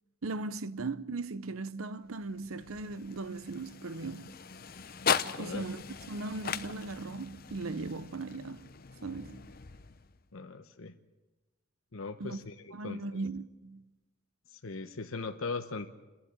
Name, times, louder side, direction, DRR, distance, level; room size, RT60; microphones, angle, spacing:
voice 1, 0.2-4.4 5.4-5.8 6.1-8.7 9.0-9.5 12.2-12.4 12.7-13.8, right 3 dB, 90° right, 0.8 m, -38 dB
sound 1, 2.0-10.3, left 6 dB, 45° left, 0.8 m, -38 dB
voice 2, 5.3-5.6 10.3-10.9 11.9-12.5 12.8-13.2 14.5-15.9, left 4 dB, 85° left, 1.0 m, -39 dB
29.5 x 11.5 x 8.8 m
head